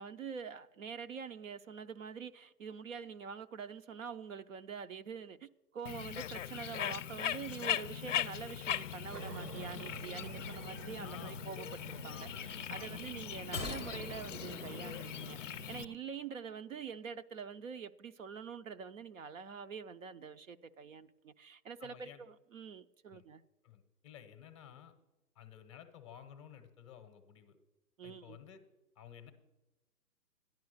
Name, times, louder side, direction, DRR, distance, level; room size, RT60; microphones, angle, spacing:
voice 1, 0.0-23.4 28.0-28.4, right 6 dB, 55° right, 0.6 m, -46 dB
Bird, 5.9-15.9, left 10 dB, 55° left, 0.5 m, -40 dB
Aircraft, 9.1-16.0, right 4 dB, 75° right, 1.0 m, -50 dB
voice 2, 11.0-11.5 12.1-13.0 21.8-22.2 23.1-23.2 23.6-24.9 25.4-27.6 28.0-28.6 29.0-29.3, left 9 dB, 20° left, 0.7 m, -53 dB
sound 1, 13.5-15.9 16.2-16.3, left 2 dB, 15° right, 0.5 m, -45 dB
13.5 x 10.5 x 6.4 m
hypercardioid pair, 145°, 49 cm